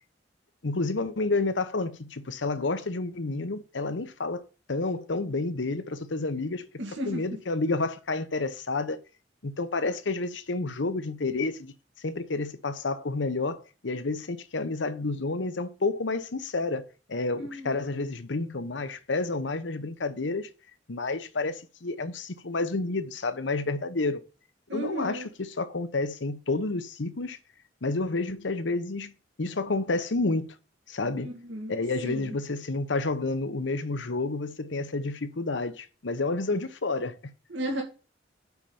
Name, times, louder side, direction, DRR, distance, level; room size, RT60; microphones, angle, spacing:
voice 1, 0.6-4.4 4.7-6.7 7.1-9.0 9.4-20.5 20.9-24.2 24.7-27.4 27.8-30.5 30.9-31.3 31.7-37.3, left 3 dB, 75° left, 0.9 m, -30 dB
voice 2, 6.8-7.2 17.3-17.8 24.7-25.3 31.2-31.7 32.0-32.3 37.5-37.8, right 1 dB, 75° right, 2.0 m, -34 dB
6.0 x 5.6 x 6.9 m
head